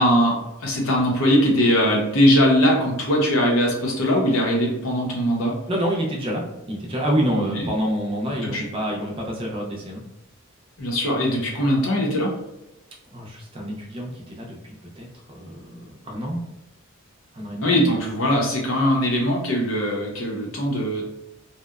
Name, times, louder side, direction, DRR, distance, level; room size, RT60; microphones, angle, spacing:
voice 1, 0.0-5.5 7.4-7.6 8.5-8.7 10.8-12.3 17.6-21.0, equal, 70° left, -1 dB, 0.7 m, -20 dB
voice 2, 5.7-10.0 13.1-16.4 17.3-17.7, equal, 25° right, -2 dB, 0.4 m, -27 dB
2.7 x 2.0 x 2.3 m, 0.89 s
head